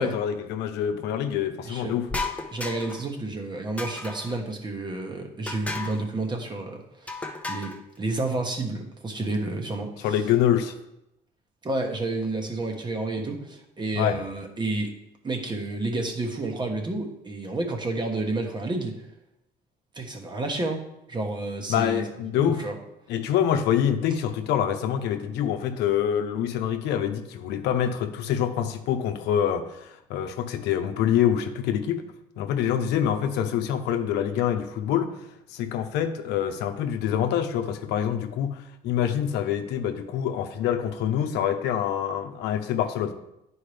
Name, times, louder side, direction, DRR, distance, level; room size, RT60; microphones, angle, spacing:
voice 1, 0.0-2.1 10.0-10.8 13.9-14.2 21.7-22.6 23.1-32.0 32.4-35.1 35.5-43.1, left 9 dB, 85° left, 6 dB, 0.7 m, -26 dB
voice 2, 1.6-2.0 2.5-10.1 11.6-14.9 15.2-19.0 19.9-20.8 21.1-22.7, right 2 dB, 25° right, 3 dB, 1.3 m, -30 dB
sound 1, 2.1-3.1 3.8-4.4 5.5-6.0 7.1-7.8, left 3 dB, 10° left, 0.8 m, -33 dB
10.0 x 4.6 x 3.4 m, 0.84 s
cardioid pair, 110°, 17 cm